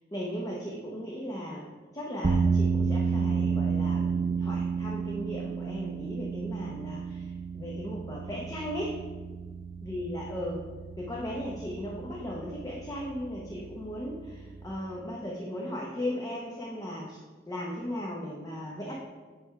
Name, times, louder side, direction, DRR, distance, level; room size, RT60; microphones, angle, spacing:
voice 1, 0.1-1.7 1.9-9.0 9.8-10.6 11.0-17.2 17.5-19.0, equal, 20° left, -3 dB, 0.8 m, -37 dB
sound 1, 2.2-14.7, right 5 dB, 30° right, 0.4 m, -31 dB
10.0 x 3.4 x 4.6 m, 1.4 s
head